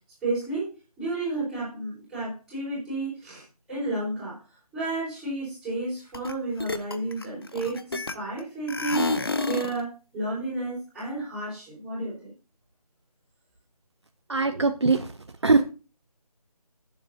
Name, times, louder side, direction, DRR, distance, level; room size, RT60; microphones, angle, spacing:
voice 1, 0.2-0.7 1.0-4.4 4.7-9.0 9.5-12.3, right 2 dB, 5° right, -11 dB, 4.4 m, -31 dB
sound 1, 6.1-6.3 6.6-8.4 8.7-9.8, left 3 dB, 40° left, 0.7 m, -29 dB
voice 2, 14.3-15.1 15.4-15.6, right 3 dB, 45° right, 7 dB, 0.7 m, -21 dB
15.5 x 7.3 x 2.8 m, 0.33 s
figure-of-eight pair, 170°, 20 cm